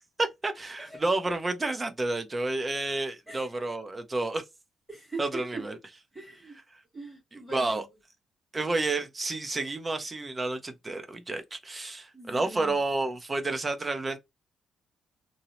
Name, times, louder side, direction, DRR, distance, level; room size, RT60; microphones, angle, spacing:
voice 1, 0.2-4.4 5.2-5.8 7.5-7.9 8.5-14.2, right 2 dB, 25° right, 0.5 m, -30 dB
voice 2, 4.9-5.6 6.1-6.6 6.9-7.8 12.1-12.7, right 3 dB, 5° right, 1.2 m, -41 dB
2.6 x 2.0 x 2.9 m
cardioid pair, 115°, 0 cm